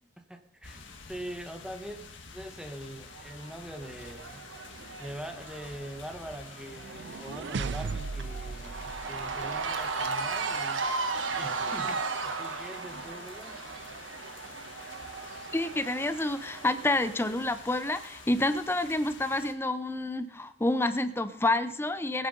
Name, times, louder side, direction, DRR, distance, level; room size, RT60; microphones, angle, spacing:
voice 1, 0.3-0.8 1.1-2.0 2.3-4.7 5.0-10.8 11.3-13.6, right 1 dB, 5° right, 5 dB, 1.3 m, -43 dB
sound 1, 0.6-19.5, left 4 dB, 75° left, 1.8 m, -49 dB
Cheering / Crowd, 3.1-18.4, right 4 dB, 85° right, 1.3 m, -37 dB
sound 2, 6.7-9.8, right 4 dB, 65° right, 0.5 m, -37 dB
voice 2, 15.5-22.3, left 2 dB, 10° left, 12 dB, 0.5 m, -28 dB
20.0 x 8.8 x 5.3 m, 0.73 s
head